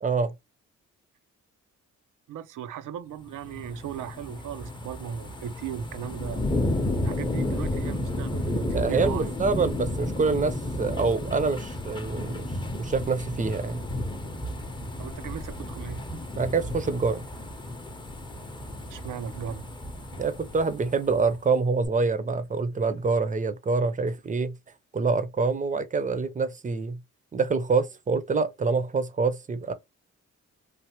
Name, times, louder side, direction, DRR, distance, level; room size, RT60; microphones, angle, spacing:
voice 1, 0.0-0.3 8.7-13.8 16.4-17.2 20.2-24.6 24.9-27.0 27.3-29.7, right 4 dB, 25° right, 0.5 m, -26 dB
voice 2, 2.3-6.4 7.0-9.4 15.0-16.1 18.9-19.7, right 8 dB, 85° right, 0.5 m, -37 dB
sound 1, 3.3-21.4 21.8-21.9, left 1 dB, 15° left, 0.6 m, -32 dB
3.2 x 2.1 x 2.8 m
cardioid pair, 85°, 31 cm